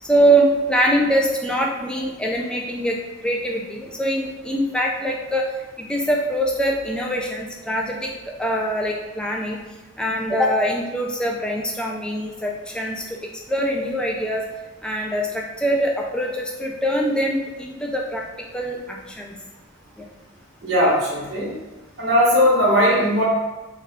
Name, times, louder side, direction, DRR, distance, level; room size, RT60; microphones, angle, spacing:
voice 1, 0.0-3.0 3.2-5.5 5.8-8.1 8.4-9.6 10.0-13.0 13.5-14.4 14.8-18.2 18.5-19.4 20.0-20.1, right 1 dB, 5° left, -1 dB, 0.3 m, -23 dB
voice 2, 20.6-21.5 22.0-23.2, equal, 55° right, -7 dB, 0.8 m, -18 dB
3.6 x 2.3 x 3.4 m, 1.1 s
head